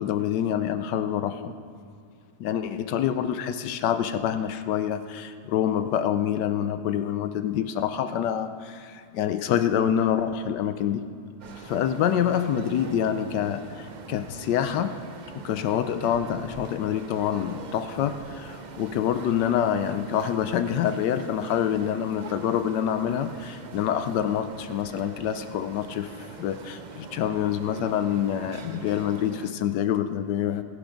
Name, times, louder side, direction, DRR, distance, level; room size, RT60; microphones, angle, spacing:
voice 1, 0.0-1.6 2.4-11.0 11.6-15.0 15.4-30.6, left 9 dB, 85° left, 10 dB, 1.3 m, -26 dB
sound 1, 11.4-29.5, right 4 dB, 85° right, 0.4 m, -43 dB
14.5 x 11.5 x 5.1 m, 2.4 s
omnidirectional pair, 1.8 m